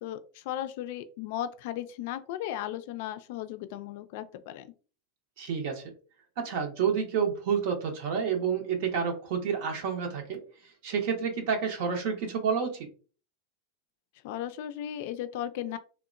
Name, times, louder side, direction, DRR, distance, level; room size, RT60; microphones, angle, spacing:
voice 1, 0.0-4.7 14.2-15.8, left 11 dB, 65° left, 11 dB, 0.3 m, -36 dB
voice 2, 5.4-5.9 6.4-10.4 10.8-12.9, right 6 dB, 65° right, 3 dB, 0.6 m, -29 dB
2.8 x 2.1 x 2.4 m, 0.38 s
supercardioid pair, 120°, 0 cm